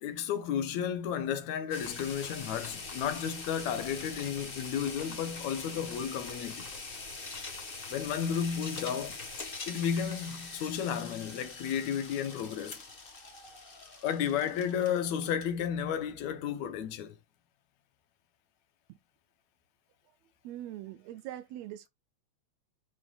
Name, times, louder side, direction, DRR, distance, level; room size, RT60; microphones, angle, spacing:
voice 1, 0.0-6.7 7.9-9.1 9.7-12.8 14.0-17.2, left 8 dB, 75° left, 2.2 m, -33 dB
sound 1, 1.7-15.6, left 3 dB, 50° left, 0.6 m, -43 dB
voice 2, 20.4-21.9, right 13 dB, 80° right, 1.6 m, -42 dB
11.5 x 4.3 x 2.4 m
omnidirectional pair, 3.4 m